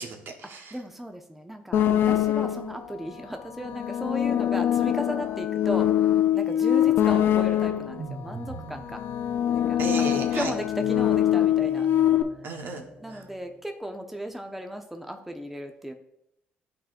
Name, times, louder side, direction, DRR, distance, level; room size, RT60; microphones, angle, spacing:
voice 1, 0.0-0.8 9.8-10.5 12.4-13.2, right 4 dB, 60° right, 3 dB, 1.1 m, -34 dB
voice 2, 0.7-5.9 6.3-9.0 9.5-9.8 10.3-11.9 13.0-15.9, equal, 5° right, 4 dB, 0.6 m, -35 dB
sound 1, 1.7-2.8 3.6-8.1 8.8-12.2, left 11 dB, 60° left, 0.5 m, -23 dB
sound 2, 7.3-13.6, right 2 dB, 75° right, 1.5 m, -44 dB
11.5 x 4.3 x 2.5 m, 0.81 s
supercardioid pair, 75°, 4 cm